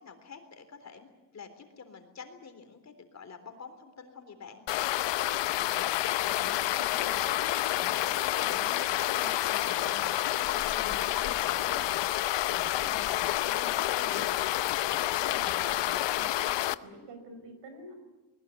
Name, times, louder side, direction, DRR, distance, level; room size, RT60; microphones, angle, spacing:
voice 1, 0.0-4.7 12.5-13.2, left 5 dB, 40° left, 7 dB, 3.7 m, -48 dB
sound 1, 4.7-16.8, left 15 dB, 85° left, 0.8 m, -29 dB
voice 2, 5.4-5.8 6.2-7.5 7.7-10.0 10.4-12.0 12.5-14.3 14.6-16.5 16.8-17.9, right 1 dB, 85° right, 8 dB, 5.7 m, -48 dB
20.5 x 20.5 x 9.7 m, 1.2 s
cardioid pair, 125°, 42 cm